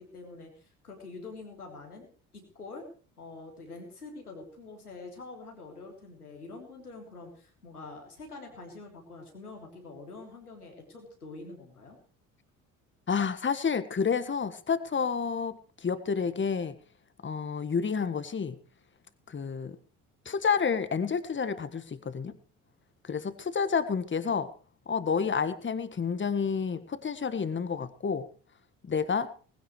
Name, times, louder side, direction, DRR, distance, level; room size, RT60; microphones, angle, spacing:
voice 1, 0.0-2.1 2.3-2.9 3.2-12.0, left 3 dB, 90° left, 1 dB, 3.6 m, -45 dB
voice 2, 13.1-16.8 17.2-18.6 19.3-19.8 20.3-22.3 23.0-24.5 24.9-28.3 28.8-29.3, left 6 dB, 25° left, 13 dB, 1.6 m, -29 dB
19.5 x 16.5 x 3.2 m, 0.39 s
figure-of-eight pair, 55°, 44 cm